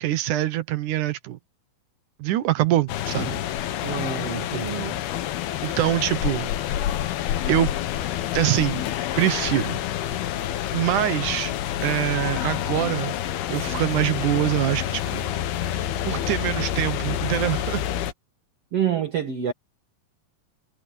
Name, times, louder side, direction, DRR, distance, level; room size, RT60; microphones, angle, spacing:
voice 1, 0.0-1.4 2.2-3.4 5.6-6.5 7.5-7.7 8.3-8.9 9.2-9.8 10.7-11.5 11.8-13.2 13.5-15.3 15.7-17.8, right 13 dB, 70° right, 2.2 m, -24 dB
sound 1, 2.9-18.1, left 11 dB, 85° left, 3.2 m, -28 dB
voice 2, 3.8-5.0 18.7-19.5, right 8 dB, 45° right, 2.7 m, -27 dB
omnidirectional pair, 4.3 m